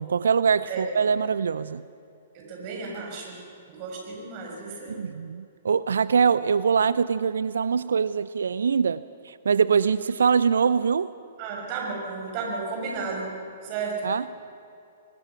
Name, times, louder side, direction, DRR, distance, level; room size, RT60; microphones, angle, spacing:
voice 1, 0.0-1.8 4.9-11.1 14.0-14.2, right 6 dB, 70° right, 16 dB, 0.5 m, -23 dB
voice 2, 2.3-3.4 3.7-5.0 11.4-13.4 13.6-14.1, right 4 dB, 40° right, 0 dB, 6.6 m, -33 dB
24.5 x 20.0 x 6.1 m, 2.6 s
figure-of-eight pair, 115°, 0 cm